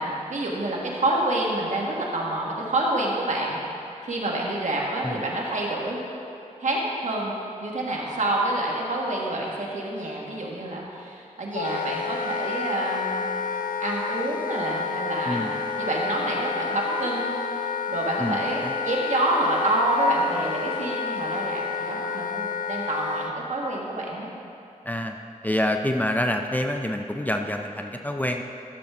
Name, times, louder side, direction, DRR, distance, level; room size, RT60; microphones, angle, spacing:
voice 1, 0.0-3.6 4.0-6.0 6.6-7.3 7.6-13.3 13.8-24.3, right 1 dB, 60° right, -3 dB, 1.7 m, -27 dB
Wind instrument woodwind instrument, 11.5-23.4, left 5 dB, 80° left, 0.4 m, -30 dB
voice 2, 18.2-18.7 24.9-25.2 25.4-28.4, left 1 dB, 10° left, 4 dB, 0.5 m, -27 dB
12.0 x 7.3 x 3.7 m, 2.6 s
wide cardioid pair, 65°, 14 cm